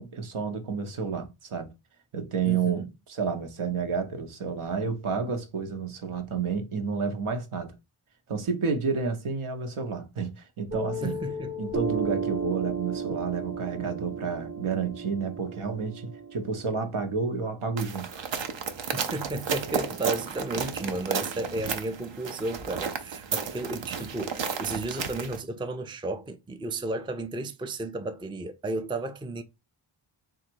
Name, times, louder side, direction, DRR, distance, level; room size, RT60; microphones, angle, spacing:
voice 1, 0.0-1.7 2.1-7.7 8.3-11.2 11.6-18.2, right 5 dB, 80° right, 1.0 m, -30 dB
voice 2, 2.5-2.9 11.0-11.5 18.9-29.4, right 2 dB, 10° right, 0.4 m, -33 dB
Piano, 10.7-17.8, right 3 dB, 30° right, 0.7 m, -34 dB
sound 1, 17.8-25.4, right 6 dB, 60° right, 0.7 m, -33 dB
3.9 x 2.5 x 4.4 m
wide cardioid pair, 130°, 50 cm